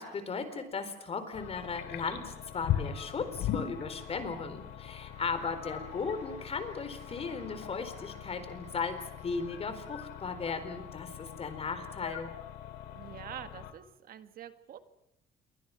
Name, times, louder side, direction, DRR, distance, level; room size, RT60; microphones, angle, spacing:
voice 1, 0.0-12.3, left 5 dB, 35° left, 10 dB, 4.2 m, -37 dB
sound 1, 1.3-13.7, left 10 dB, 80° left, 2.3 m, -40 dB
sound 2, 4.8-9.8, right 5 dB, 40° right, 5.4 m, -58 dB
voice 2, 12.9-14.8, right 10 dB, 60° right, 10 dB, 1.8 m, -46 dB
28.0 x 24.0 x 6.0 m, 0.88 s
cardioid pair, 110°, 17 cm